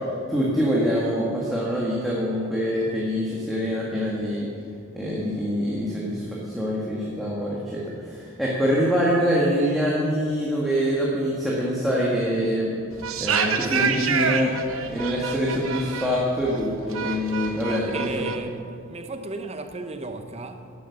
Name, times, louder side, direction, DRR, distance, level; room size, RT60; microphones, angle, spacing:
voice 1, 0.3-4.5 5.0-12.7 13.2-14.5 14.9-18.2, equal, ahead, 1.8 m, -25 dB
sound 1, 12.9-18.4, right 6 dB, 70° right, 1.0 m, -27 dB
voice 2, 17.7-20.7, right 3 dB, 30° right, 0.8 m, -34 dB
12.0 x 10.0 x 7.2 m
head